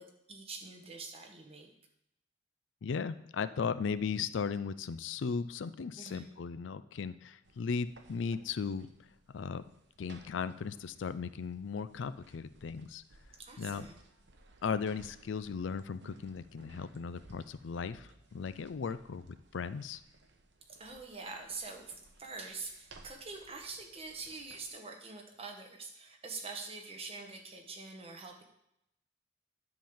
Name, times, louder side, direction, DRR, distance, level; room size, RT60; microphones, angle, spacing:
voice 1, 0.0-1.7 6.0-6.3 13.4-14.0 20.7-28.4, right 4 dB, 30° right, 2 dB, 1.3 m, -45 dB
voice 2, 2.8-8.9 9.3-9.7 10.0-13.0 13.6-13.9 14.6-20.0, left 5 dB, 75° left, 14 dB, 0.4 m, -37 dB
sound 1, 7.4-24.7, right 2 dB, 65° right, 1.0 m, -60 dB
10.0 x 3.8 x 7.0 m, 0.80 s
head